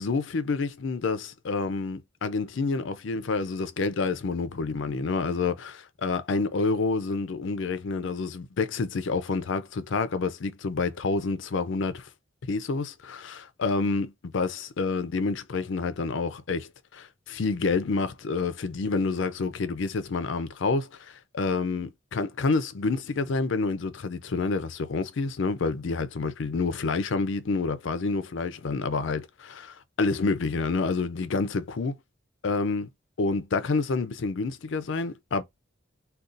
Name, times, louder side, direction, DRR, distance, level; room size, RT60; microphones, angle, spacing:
voice 1, 0.0-12.1 12.5-14.1 14.3-32.0 32.4-32.9 33.2-35.4, left 4 dB, 70° left, 0.5 m, -28 dB
2.5 x 2.3 x 3.8 m
head